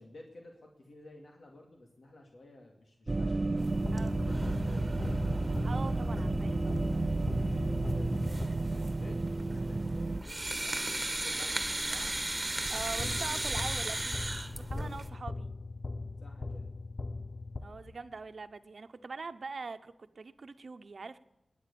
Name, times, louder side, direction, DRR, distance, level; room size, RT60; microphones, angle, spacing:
voice 1, 0.0-3.5 4.1-5.5 7.3-12.1 12.9-13.7 14.5-14.9 16.2-16.7, left 1 dB, 75° left, 1 dB, 2.4 m, -52 dB
sound 1, 3.1-10.2, right 2 dB, 40° right, 0.6 m, -32 dB
sound 2, 3.6-15.1, right 1 dB, 20° right, 1.8 m, -37 dB
sound 3, 3.8-9.0 13.0-18.2, left 2 dB, 45° left, 0.6 m, -39 dB
voice 2, 5.6-6.8 12.7-14.2 14.7-15.5 17.6-21.2, right 4 dB, 65° right, 10 dB, 1.0 m, -43 dB
21.0 x 9.6 x 7.0 m, 0.90 s
wide cardioid pair, 90°, 0 cm